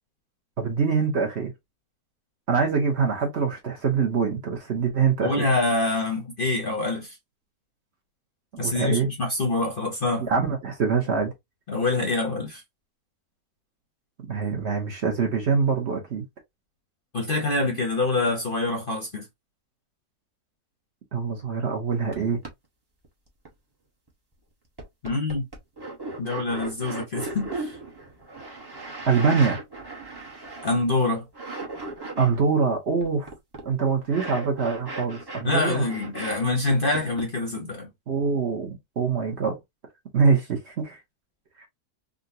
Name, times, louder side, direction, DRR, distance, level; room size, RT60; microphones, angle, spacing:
voice 1, 0.6-1.5 2.5-5.3 8.6-9.1 10.2-11.3 14.3-16.2 21.1-22.4 29.1-29.6 32.2-33.3 33.6-35.9 38.1-39.6 40.1-41.0 41.6-41.7, right 5 dB, 50° right, 1.0 m, -24 dB
voice 2, 5.2-7.2 8.6-10.3 11.7-12.6 17.1-19.2 25.0-25.4 26.2-27.8 30.6-31.2 35.4-37.9, left 2 dB, 45° left, 0.8 m, -25 dB
sound 1, 22.1-22.2 22.4-22.5 23.0-23.5 24.1-24.2 24.8-31.0 31.3-32.4 33.0-36.4 36.7-37.2, right 2 dB, 20° right, 0.7 m, -36 dB
3.8 x 2.2 x 2.6 m
omnidirectional pair, 1.6 m